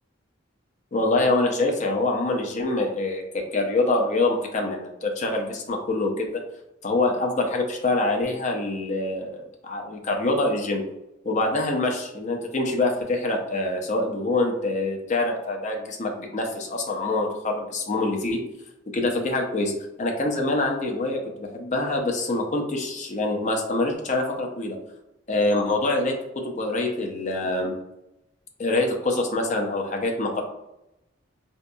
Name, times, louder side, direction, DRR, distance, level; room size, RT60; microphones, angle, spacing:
voice 1, 0.9-6.4 6.8-10.8 11.2-18.4 18.9-19.7 20.0-24.8 25.3-27.7 28.6-30.4, left 2 dB, 40° left, 1 dB, 0.6 m, -25 dB
3.8 x 2.7 x 2.2 m, 0.87 s
head